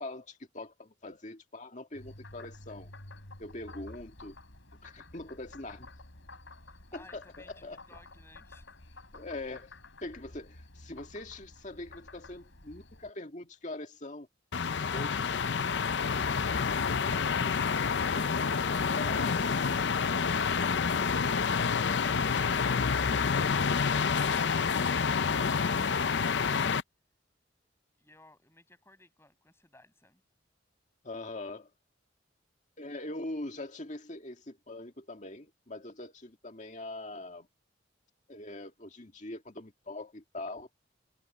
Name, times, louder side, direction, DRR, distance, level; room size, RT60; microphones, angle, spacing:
voice 1, 0.0-2.9 3.4-4.4 4.8-5.9 6.9-7.8 9.1-14.3 14.9-15.1 18.8-19.3 31.0-31.7 32.8-37.5 38.3-40.7, left 2 dB, 40° left, 2.1 m, -42 dB
Frog, 1.9-13.1, left 2 dB, 80° left, 3.8 m, -51 dB
voice 2, 6.6-8.8 28.0-30.2, left 2 dB, 15° left, 7.9 m, -59 dB
sound 1, 14.5-26.8, left 5 dB, 65° left, 0.6 m, -28 dB
head